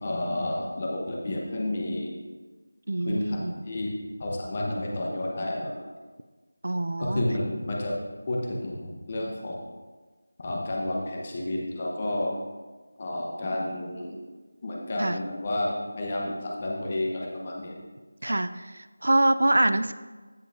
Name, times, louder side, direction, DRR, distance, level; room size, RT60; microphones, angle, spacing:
voice 1, 0.0-2.1 3.0-3.4 3.7-3.9 4.2-5.9 7.0-8.0 8.3-9.6 10.4-12.3 13.0-14.2 14.6-17.7 18.2-18.3, left 1 dB, 25° left, -1 dB, 0.9 m, -30 dB
voice 2, 2.9-3.5 6.6-7.2 15.0-15.2 18.2-19.9, right 1 dB, 70° right, 12 dB, 0.4 m, -25 dB
14.5 x 5.3 x 2.6 m, 1.3 s
figure-of-eight pair, 175°, 0 cm